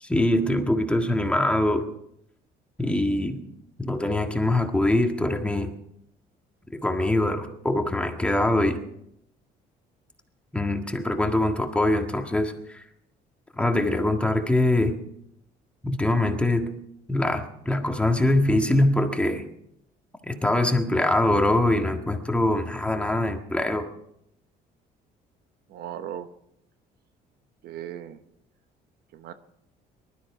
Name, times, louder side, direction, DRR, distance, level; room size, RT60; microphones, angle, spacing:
voice 1, 0.0-1.8 2.8-3.4 3.8-5.7 6.7-8.8 10.5-12.8 13.6-14.9 15.8-16.7 17.1-19.4 20.3-23.9, left 1 dB, 5° left, 4 dB, 1.7 m, -23 dB
voice 2, 25.7-26.3 27.6-28.2 29.1-29.3, right 10 dB, 70° right, 11 dB, 1.0 m, -37 dB
19.5 x 12.5 x 4.8 m, 0.76 s
cardioid pair, 110°, 17 cm